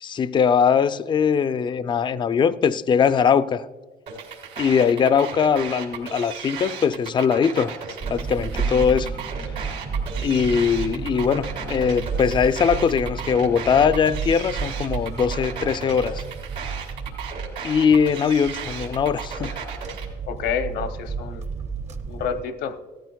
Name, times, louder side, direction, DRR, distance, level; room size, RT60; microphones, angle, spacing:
voice 1, 0.0-3.7 4.6-7.7 8.1-9.1 10.2-16.2 17.6-19.5, left 6 dB, 30° left, 0.4 m, -21 dB
sound 1, 4.1-20.1, right 6 dB, 80° right, 2.9 m, -35 dB
sound 2, 8.0-22.4, right 5 dB, 40° right, 0.9 m, -32 dB
voice 2, 20.3-21.5 22.1-22.8, left 7 dB, 75° left, 0.8 m, -29 dB
16.0 x 14.0 x 2.3 m
cardioid pair, 110°, 17 cm